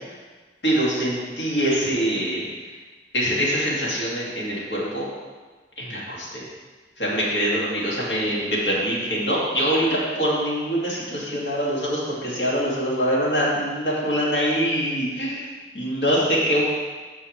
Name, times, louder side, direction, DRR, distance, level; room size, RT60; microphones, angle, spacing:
voice 1, 0.6-2.4 3.1-5.1 5.8-6.4 7.0-15.4 15.7-16.6, equal, 70° left, -5 dB, 2.5 m, -24 dB
14.0 x 5.4 x 3.4 m, 1.3 s
head